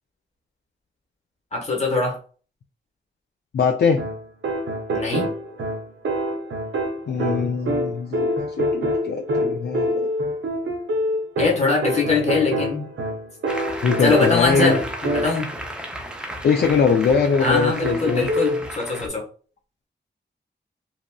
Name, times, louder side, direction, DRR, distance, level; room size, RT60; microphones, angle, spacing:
voice 1, 1.5-2.2 4.9-5.3 11.4-12.9 14.0-14.8 15.1-15.5 17.4-19.2, left 3 dB, 35° left, -1 dB, 1.2 m, -22 dB
voice 2, 3.5-4.0 7.1-10.1 13.8-14.8 16.4-18.3, left 5 dB, 60° left, 3 dB, 0.4 m, -21 dB
sound 1, 4.0-15.6 17.8-18.6, equal, 85° right, 0.5 m, -26 dB
Applause, 13.5-19.1, equal, 5° right, 0.5 m, -34 dB
3.0 x 2.5 x 2.2 m, 0.40 s
wide cardioid pair, 85°, 19 cm